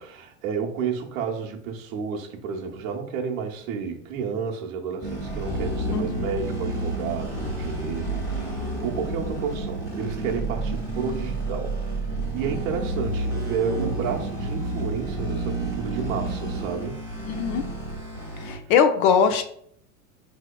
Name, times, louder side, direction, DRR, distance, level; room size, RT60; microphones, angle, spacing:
voice 1, 0.0-12.0 12.3-17.0, right 6 dB, 80° right, 1 dB, 0.9 m, -31 dB
sound 1, 5.0-18.6, right 2 dB, 10° left, 1.2 m, -30 dB
voice 2, 5.9-6.3 17.3-17.6 18.4-19.4, left 7 dB, 55° left, 8 dB, 0.5 m, -21 dB
4.2 x 2.8 x 2.2 m, 0.65 s
supercardioid pair, 120°, 40 cm